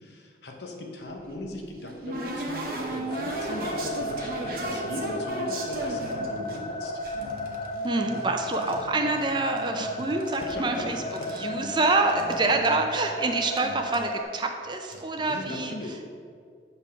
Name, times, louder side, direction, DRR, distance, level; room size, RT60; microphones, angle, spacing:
voice 1, 0.0-7.0 10.0-10.1 10.4-10.9 11.2-11.5 15.3-16.0, left 1 dB, 65° left, 2 dB, 0.9 m, -38 dB
sound 1, 1.1-6.6 7.0-8.8 9.1-9.8 10.1-11.4 11.8-11.9 12.1-12.3 12.6-12.7 13.6-13.7 13.9-14.2 14.7-15.0, right 2 dB, 50° right, 0.9 m, -36 dB
sound 2, 3.1-14.2, left 1 dB, 35° left, 0.5 m, -34 dB
sound 3, 4.6-5.5 5.9-6.7 7.1-10.2 10.4-13.8, right 2 dB, 85° right, 0.9 m, -42 dB
voice 2, 7.8-11.0 11.3-15.7, right 3 dB, 25° right, 5 dB, 0.4 m, -26 dB
7.0 x 3.5 x 5.6 m, 2.1 s
head